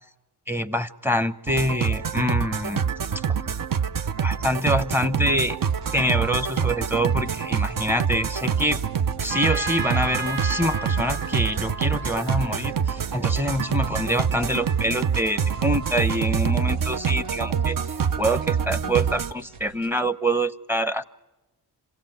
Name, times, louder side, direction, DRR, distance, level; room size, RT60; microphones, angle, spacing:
voice 1, 0.5-2.8 4.2-5.6 5.9-8.8 9.2-17.8 18.2-21.0, equal, 5° right, 13 dB, 0.8 m, -25 dB
sound 1, 1.5-19.3, right 7 dB, 50° right, 0.7 m, -26 dB
sound 2, 5.6-20.0, right 3 dB, 80° right, 1.3 m, -48 dB
Trumpet, 9.3-13.0, right 2 dB, 25° right, 1.1 m, -34 dB
27.0 x 17.0 x 9.1 m, 1.1 s
cardioid pair, 55°, 43 cm